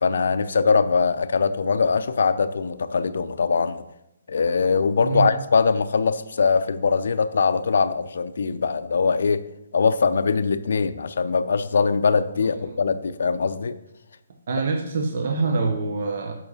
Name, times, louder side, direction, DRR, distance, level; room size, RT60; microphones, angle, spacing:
voice 1, 0.0-3.8 4.3-9.5 9.7-13.8, left 5 dB, 70° left, 12 dB, 0.4 m, -22 dB
voice 2, 5.0-5.3 12.4-12.7 14.5-16.3, right 4 dB, 55° right, 3 dB, 0.8 m, -25 dB
5.6 x 4.8 x 6.3 m, 0.86 s
hypercardioid pair, 160°, 0 cm